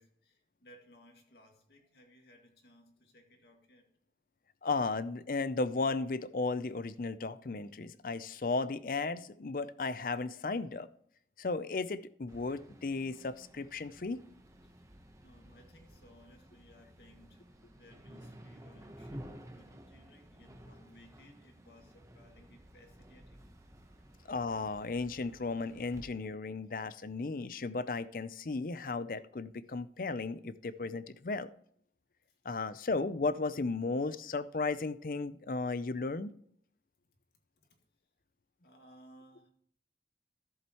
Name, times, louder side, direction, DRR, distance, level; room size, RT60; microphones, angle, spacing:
voice 1, 0.0-3.9 15.2-17.4 17.8-23.5 37.7-37.8 38.6-39.5, equal, 70° left, 2 dB, 2.0 m, -60 dB
voice 2, 4.6-10.9 11.4-14.2 24.3-31.5 32.4-36.3, left 3 dB, 50° left, 15 dB, 0.5 m, -35 dB
sound 1, 12.3-26.1, equal, 20° right, 0.9 m, -53 dB
13.5 x 7.3 x 3.0 m, 0.66 s
head